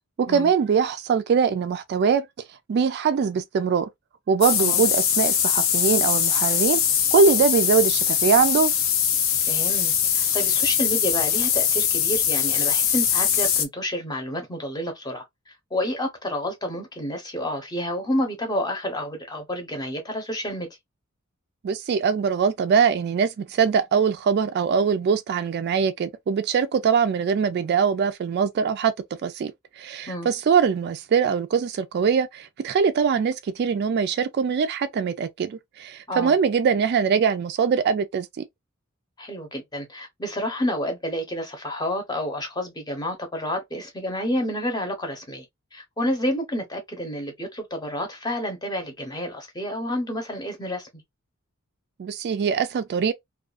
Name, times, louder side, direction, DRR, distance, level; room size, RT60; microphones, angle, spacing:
voice 1, 0.2-2.3 2.7-3.9 4.3-6.8 7.1-8.7 21.6-28.9 29.2-38.4 52.0-53.1, right 6 dB, 50° right, 0.3 m, -22 dB
sound 1, 4.4-13.7, left 8 dB, 65° left, 0.5 m, -22 dB
voice 2, 9.5-15.2 15.7-20.7 30.1-30.3 36.1-36.4 39.2-45.4 45.7-50.9, equal, 20° left, 0.8 m, -29 dB
2.4 x 2.3 x 2.3 m
head